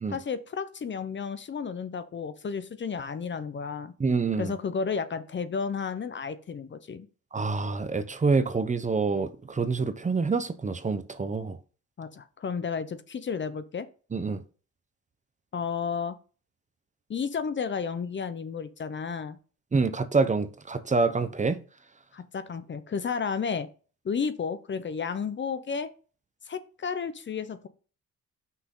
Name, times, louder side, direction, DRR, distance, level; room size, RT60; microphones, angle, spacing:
voice 1, 0.1-3.9 4.4-7.1 12.0-13.9 15.5-16.2 17.1-19.4 22.1-23.7 24.0-25.9 26.5-27.7, left 6 dB, 40° left, 0.9 m, -32 dB
voice 2, 4.0-4.5 7.3-11.6 14.1-14.4 19.7-21.6, right 4 dB, 25° right, 0.8 m, -26 dB
6.0 x 6.0 x 3.8 m
cardioid pair, 90°, 30 cm